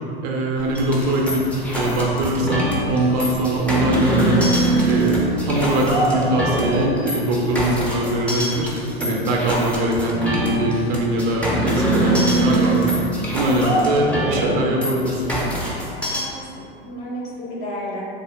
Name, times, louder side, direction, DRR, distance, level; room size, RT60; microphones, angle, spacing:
voice 1, 0.2-4.4 4.8-5.2 5.4-8.7 9.0-12.9 13.3-15.3, right 1 dB, 50° right, -1 dB, 0.5 m, -22 dB
sound 1, 0.5-6.9, equal, 75° left, 1.2 m, -37 dB
sound 2, 0.7-16.2, right 1 dB, 5° left, 0.5 m, -23 dB
voice 2, 16.1-18.0, equal, 45° left, -5 dB, 1.1 m, -33 dB
3.6 x 2.1 x 3.4 m, 2.5 s
hypercardioid pair, 90°, 31 cm